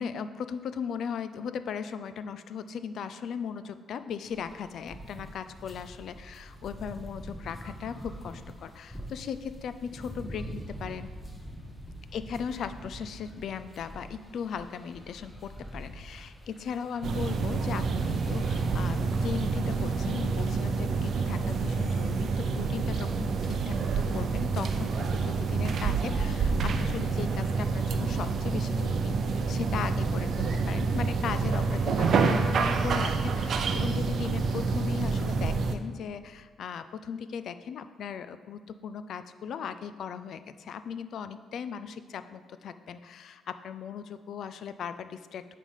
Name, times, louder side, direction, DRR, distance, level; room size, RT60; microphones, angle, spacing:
voice 1, 0.0-11.1 12.1-29.2 29.5-45.5, left 7 dB, 65° left, 12 dB, 0.4 m, -38 dB
sound 1, 4.2-23.2, equal, 5° left, 1.2 m, -46 dB
sound 2, 17.0-35.8, right 4 dB, 60° right, 0.5 m, -28 dB
8.6 x 3.3 x 5.6 m, 1.5 s
cardioid pair, 90°, 0 cm